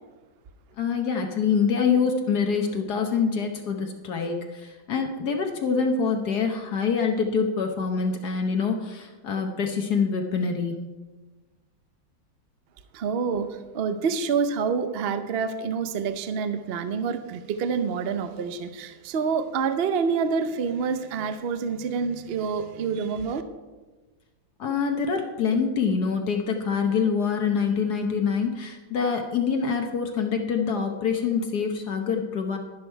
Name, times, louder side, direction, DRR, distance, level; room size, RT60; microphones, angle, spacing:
voice 1, 0.8-10.8 24.6-32.6, left 5 dB, 60° left, 4 dB, 1.4 m, -25 dB
voice 2, 12.9-23.4, right 5 dB, 65° right, 9 dB, 0.6 m, -27 dB
11.0 x 10.5 x 4.5 m, 1.3 s
omnidirectional pair, 2.1 m